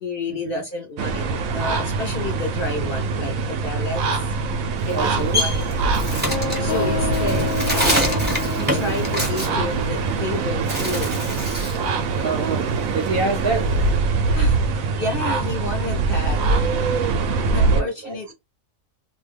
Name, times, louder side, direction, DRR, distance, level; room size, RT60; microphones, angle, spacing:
voice 1, 0.0-1.3 1.5-4.4 4.9-6.1 6.6-8.2 8.6-11.1 14.4-16.4 17.5-18.3, left 2 dB, 55° left, 0.7 m, -30 dB
sound 1, 1.0-17.8, right 4 dB, 85° right, 1.0 m, -23 dB
Bird, 4.8-10.3 10.6-11.9 12.2-13.9, equal, 10° right, 0.7 m, -26 dB
voice 2, 4.9-5.4 12.2-12.6 12.9-13.7 17.7-18.2, right 3 dB, 55° right, 0.8 m, -26 dB
sound 2, 6.3-11.6, left 8 dB, 75° left, 1.0 m, -31 dB
2.6 x 2.2 x 3.3 m
omnidirectional pair, 1.4 m